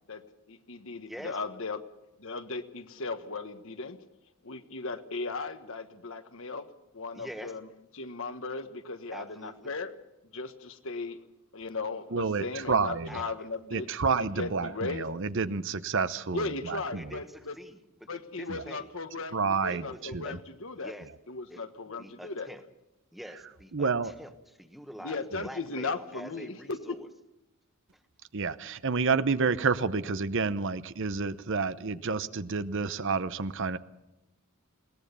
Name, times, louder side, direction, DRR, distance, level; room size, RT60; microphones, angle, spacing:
voice 1, 0.5-1.8 2.2-4.0 4.4-6.7 6.9-7.6 7.9-9.9 10.3-11.2 11.5-13.9 14.2-15.1 16.3-17.5 18.1-20.9 21.3-22.5 25.0-27.0, left 3 dB, 60° left, 9 dB, 1.3 m, -37 dB
voice 2, 1.0-1.4 7.1-7.5 9.1-9.7 13.1-13.5 16.7-18.9 19.7-20.4 20.8-21.1 21.5-22.6 23.1-24.3 24.6-27.1, equal, ahead, 8 dB, 1.3 m, -46 dB
voice 3, 12.1-13.3 13.7-17.2 18.5-18.6 19.3-20.2 23.7-24.1 25.3-25.5 28.3-33.8, right 4 dB, 55° right, 14 dB, 0.8 m, -29 dB
21.5 x 18.5 x 6.9 m, 0.93 s
head